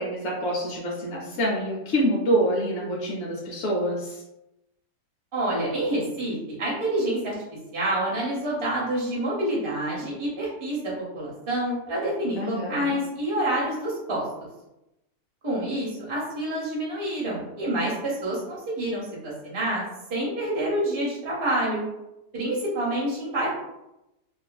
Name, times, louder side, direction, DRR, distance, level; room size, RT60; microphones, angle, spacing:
voice 1, 0.0-4.2 12.4-13.0, equal, 70° left, -4 dB, 0.6 m, -26 dB
voice 2, 5.3-7.3 7.7-14.2 15.4-19.8 20.1-21.8 22.3-23.5, right 1 dB, 45° right, -5 dB, 0.3 m, -27 dB
2.5 x 2.4 x 2.2 m, 0.89 s
omnidirectional pair, 1.7 m